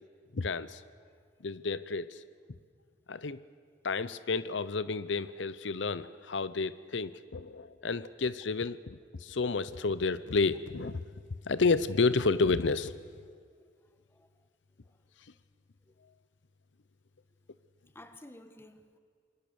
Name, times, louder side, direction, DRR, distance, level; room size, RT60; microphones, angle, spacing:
voice 1, 0.3-0.8 1.4-2.2 3.1-3.4 3.8-11.0 11.4-13.0, left 4 dB, 80° left, 0.7 m, -30 dB
voice 2, 17.9-19.0, left 1 dB, 15° left, 1.5 m, -54 dB
28.0 x 23.0 x 7.0 m
head